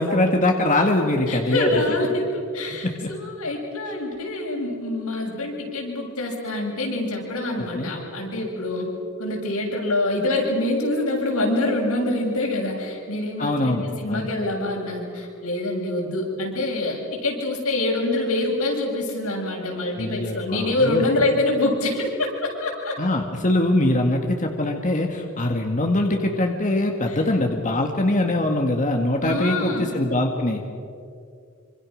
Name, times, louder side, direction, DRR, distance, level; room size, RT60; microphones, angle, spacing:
voice 1, 0.0-1.7 2.7-3.1 7.6-7.9 13.4-14.3 20.0-21.0 23.0-30.6, left 1 dB, 35° left, 3 dB, 1.8 m, -22 dB
voice 2, 1.3-8.9 9.2-22.9 27.1-27.2 29.2-29.9, left 2 dB, 90° left, -2 dB, 7.5 m, -25 dB
26.5 x 26.0 x 6.5 m, 2.4 s
head